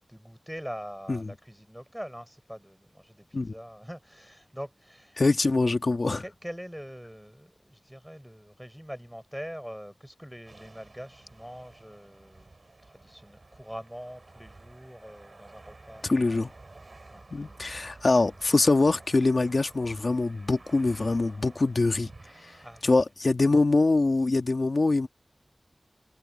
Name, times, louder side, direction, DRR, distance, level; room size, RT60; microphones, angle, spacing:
voice 1, 0.1-5.2 6.2-12.5 12.8-16.4 17.1-17.3 22.6-22.9, equal, 5° right, 4.7 m, -43 dB
voice 2, 5.2-6.2 16.0-16.5 17.3-22.1 22.4-25.1, left 3 dB, 70° left, 1.6 m, -24 dB
sound 1, 10.5-22.8, right 2 dB, 65° right, 4.0 m, -51 dB
wide cardioid pair, 40°, 0 cm